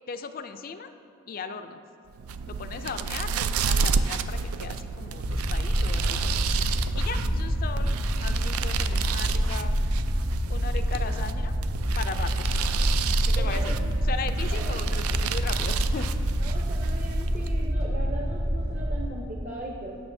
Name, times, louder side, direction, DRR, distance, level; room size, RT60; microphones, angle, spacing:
voice 1, 0.1-0.9 1.3-1.8 2.5-7.9 8.2-10.0 10.5-11.5 12.0-12.5 13.3-13.7 14.0-16.1, left 5 dB, 40° left, 9 dB, 0.4 m, -37 dB
sound 1, 2.1-17.6, right 5 dB, 85° right, 0.4 m, -30 dB
sound 2, 5.3-19.1, equal, 55° right, 1.8 m, -27 dB
voice 2, 13.4-13.9 14.5-14.9 16.4-20.0, right 1 dB, 40° right, -2 dB, 0.8 m, -38 dB
17.0 x 6.3 x 2.7 m, 2.6 s
head